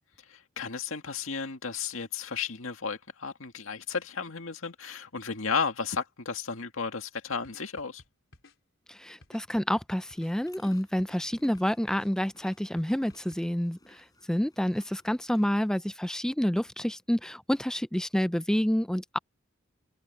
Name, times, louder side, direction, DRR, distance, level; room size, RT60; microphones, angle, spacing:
voice 1, 0.3-8.0, left 5 dB, 85° left, 2.1 m, -33 dB
sound 1, 7.4-8.5 9.2-10.3 11.0-12.1 12.8-13.4, left 2 dB, 70° left, 4.8 m, -55 dB
voice 2, 8.9-19.2, equal, 5° left, 0.3 m, -28 dB
sound 2, 10.0-15.8, left 1 dB, 20° left, 6.7 m, -58 dB
head